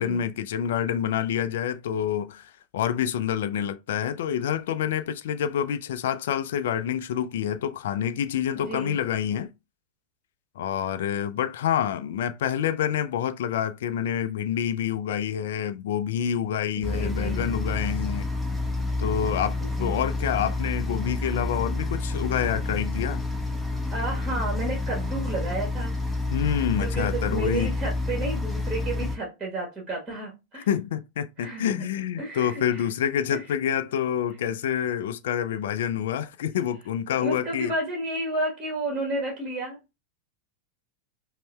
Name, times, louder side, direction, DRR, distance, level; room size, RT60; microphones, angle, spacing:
voice 1, 0.0-9.5 10.6-18.3 19.0-23.2 26.3-27.7 30.6-37.7, left 9 dB, 55° left, 0.3 m, -27 dB
voice 2, 8.5-9.0 16.9-17.5 19.8-20.0 23.9-25.9 26.7-30.7 31.4-31.8 32.2-32.8 37.2-40.0, right 2 dB, 15° right, 1.3 m, -32 dB
sound 1, 16.8-29.2, left 2 dB, 5° left, 0.7 m, -29 dB
5.2 x 2.1 x 2.2 m
figure-of-eight pair, 90°, 0 cm